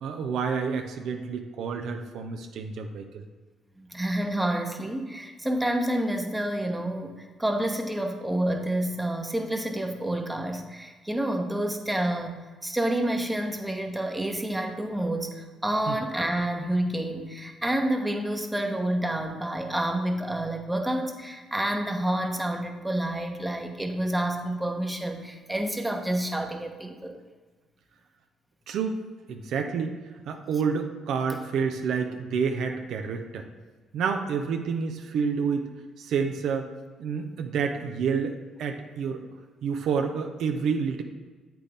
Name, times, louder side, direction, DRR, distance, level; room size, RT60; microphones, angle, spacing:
voice 1, 0.0-3.2 15.9-16.0 28.7-29.0 29.3-30.0 30.3-33.5 33.9-35.7 36.0-36.7 37.0-39.2 39.6-41.0, right 6 dB, 75° right, 4 dB, 0.7 m, -29 dB
voice 2, 3.8-12.3 12.6-27.2, right 1 dB, 10° right, 3 dB, 1.2 m, -29 dB
8.2 x 6.0 x 3.5 m, 1.4 s
supercardioid pair, 65°, 0 cm